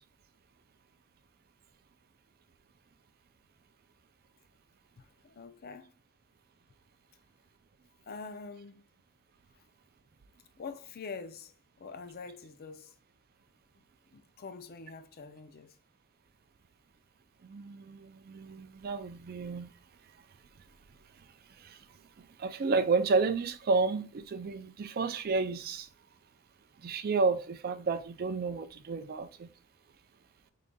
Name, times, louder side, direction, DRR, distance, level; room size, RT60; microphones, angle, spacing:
voice 1, 5.0-5.9 8.1-8.8 10.6-12.9 13.8-13.9 14.1-15.7, left 4 dB, 45° left, 0.5 m, -45 dB
voice 2, 17.4-19.7 21.6-21.8 22.4-25.9 26.8-29.5, right 4 dB, 45° right, 0.4 m, -31 dB
5.2 x 3.7 x 2.2 m
head